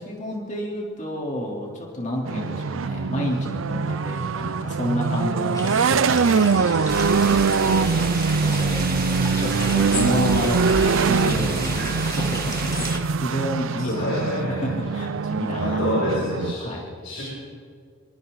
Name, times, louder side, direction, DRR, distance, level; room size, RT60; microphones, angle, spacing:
voice 1, 0.0-6.9 7.6-8.1 8.4-16.9, equal, 40° left, -2 dB, 3.7 m, -30 dB
sound 1, 2.3-16.5, right 5 dB, 75° right, 0.5 m, -23 dB
sound 2, 5.5-13.0, left 2 dB, 20° left, 2.8 m, -35 dB
sound 3, 6.9-13.0, right 3 dB, 50° right, 1.5 m, -29 dB
voice 2, 13.8-14.6 15.6-16.7 17.0-17.2, left 1 dB, 65° left, -6 dB, 7.4 m, -26 dB
27.0 x 24.0 x 4.1 m, 2.2 s
head